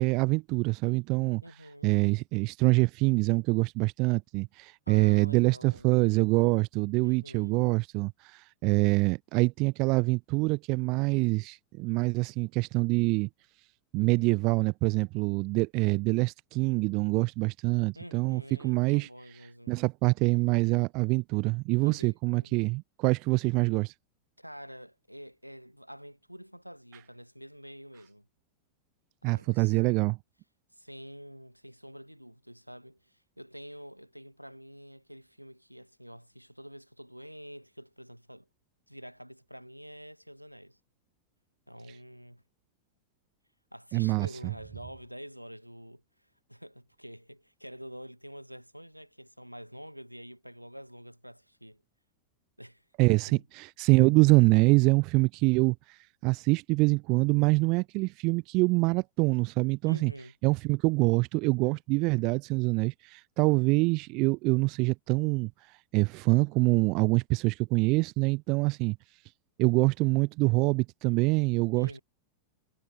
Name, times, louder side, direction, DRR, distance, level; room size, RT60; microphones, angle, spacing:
voice 1, 0.0-1.4 1.8-13.3 13.9-19.1 19.7-23.9 29.2-30.2 43.9-44.3 53.0-60.1 60.4-69.0 69.6-72.0, right 26 dB, 40° right, 0.5 m, -25 dB
voice 2, 1.4-1.9 4.9-5.9 7.0-7.7 17.9-19.8 21.8-22.6 24.4-28.3 29.2-30.1 30.7-38.5 38.9-40.8 41.7-42.4 43.7-51.8 52.6-52.8 59.8-60.3 71.7-72.0, equal, 90° right, 8.0 m, -47 dB
figure-of-eight pair, 90°, 0 cm